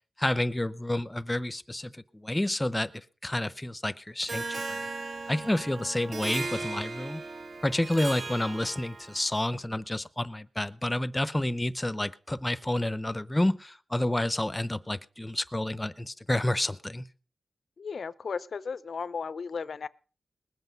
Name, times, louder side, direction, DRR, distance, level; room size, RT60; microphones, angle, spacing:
voice 1, 0.2-4.8 5.3-7.2 7.6-17.0, left 1 dB, 15° left, 16 dB, 0.6 m, -29 dB
Harp, 4.3-9.3, right 3 dB, 50° right, 1.0 m, -37 dB
voice 2, 17.8-19.9, left 5 dB, 65° left, 17 dB, 0.6 m, -35 dB
20.0 x 8.0 x 5.3 m, 0.39 s
wide cardioid pair, 105°, 0 cm